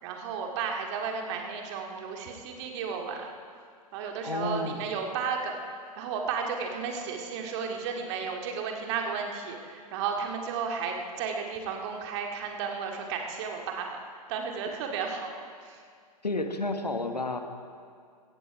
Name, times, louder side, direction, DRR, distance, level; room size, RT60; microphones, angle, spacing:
voice 1, 0.0-3.3 3.9-5.6 6.0-14.0 14.3-15.3 15.6-15.8, right 6 dB, 45° right, 2 dB, 2.1 m, -33 dB
voice 2, 4.2-4.8 16.2-17.4, left 2 dB, 85° left, 6 dB, 1.4 m, -31 dB
16.0 x 15.5 x 4.8 m, 2.1 s
figure-of-eight pair, 105°, 21 cm